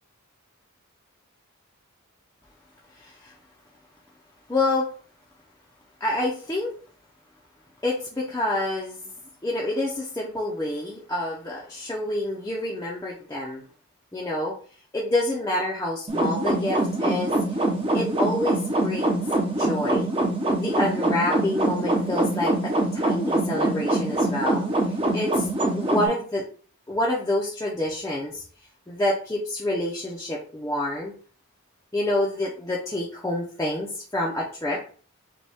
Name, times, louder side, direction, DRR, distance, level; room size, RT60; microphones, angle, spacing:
voice 1, 3.0-3.3 4.5-4.9 6.0-6.7 7.8-9.1 9.4-13.6 14.1-14.5 14.9-17.4 17.9-19.2 19.5-20.1 20.5-24.6 25.1-25.5 25.8-26.4 26.9-28.4 28.9-31.1 31.9-34.8, left 1 dB, 15° left, -5 dB, 0.6 m, -27 dB
sound 1, 16.1-26.1, right 1 dB, 25° right, 0.7 m, -24 dB
5.2 x 2.3 x 3.5 m, 0.43 s
head